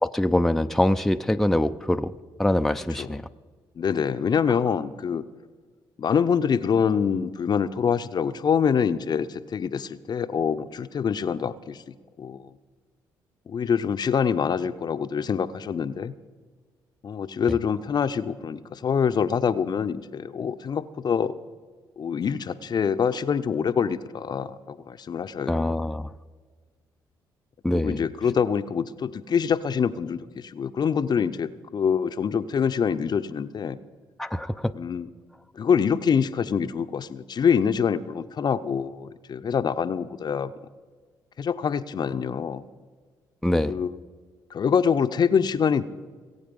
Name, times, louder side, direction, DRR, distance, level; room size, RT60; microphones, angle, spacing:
voice 1, 0.0-2.1 2.4-3.3 25.5-26.1 27.6-28.0 34.2-34.7 43.4-43.8, left 1 dB, 5° left, 8 dB, 0.5 m, -24 dB
voice 2, 3.8-5.2 6.0-11.8 12.2-12.5 13.5-16.1 17.0-21.4 22.0-25.7 27.7-33.8 34.7-35.1 35.5-40.5 41.4-42.6 43.7-43.9 44.5-45.8, left 7 dB, 50° left, 12 dB, 0.7 m, -25 dB
19.5 x 8.5 x 5.3 m, 1.5 s
supercardioid pair, 55°, 9 cm